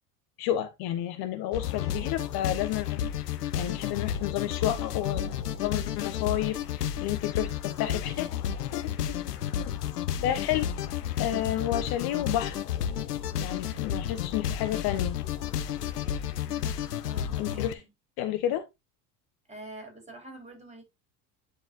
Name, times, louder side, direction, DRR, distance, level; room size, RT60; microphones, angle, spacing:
voice 1, 0.4-3.1 3.5-8.3 8.7-8.8 9.6-9.7 10.2-10.7 11.2-12.6 13.4-15.2 17.4-17.7 18.2-18.6, left 12 dB, 50° left, 1.1 m, -31 dB
sound 1, 1.5-17.7, left 10 dB, 85° left, 0.8 m, -32 dB
sound 2, 10.3-16.4, equal, ahead, 3.6 m, -50 dB
voice 2, 17.0-17.9 19.5-20.8, right 1 dB, 15° right, 4.4 m, -46 dB
10.5 x 4.9 x 2.5 m
hypercardioid pair, 75°, 46 cm